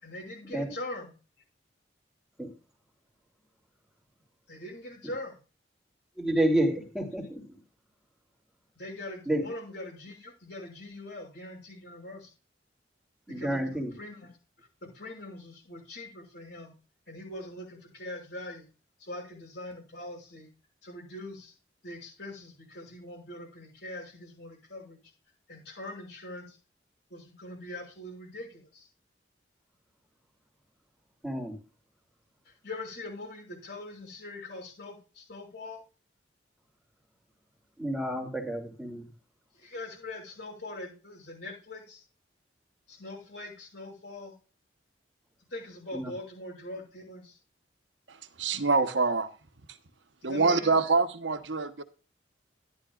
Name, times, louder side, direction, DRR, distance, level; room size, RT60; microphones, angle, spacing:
voice 1, 0.0-1.1 4.5-5.4 8.8-12.3 13.3-14.3 14.8-16.7 17.1-18.7 19.0-20.5 20.8-21.5 21.8-25.0 25.5-26.6 27.1-28.9 32.6-35.8 39.6-42.0 42.9-44.3 45.5-47.4 50.2-50.8, left 2 dB, 65° left, 5.8 m, -42 dB
voice 2, 6.2-7.5 9.3-9.4 13.3-13.9 31.2-31.5 37.8-39.1 45.9-46.1, right 1 dB, 5° right, 2.6 m, -29 dB
voice 3, 48.1-49.3 50.2-51.8, right 4 dB, 80° right, 1.1 m, -26 dB
13.5 x 11.5 x 2.4 m
head